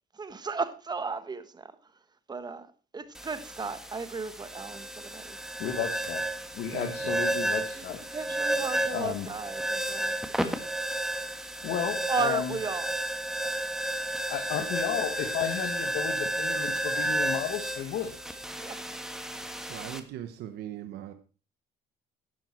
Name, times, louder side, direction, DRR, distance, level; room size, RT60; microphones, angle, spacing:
voice 1, 0.2-1.6 2.3-2.7 2.9-4.9 5.1-5.4 8.1-10.2 12.1-12.9 18.6-18.8, right 4 dB, 25° right, 1.2 m, -34 dB
sound 1, 3.1-20.0, right 1 dB, 5° right, 1.5 m, -32 dB
voice 2, 5.6-6.2 6.5-8.0 8.9-9.3 11.6-12.6 13.4-13.5 14.3-18.1, left 9 dB, 75° left, 1.6 m, -33 dB
voice 3, 19.6-21.1, right 11 dB, 75° right, 1.2 m, -39 dB
11.5 x 10.5 x 4.4 m
cardioid pair, 110°, 17 cm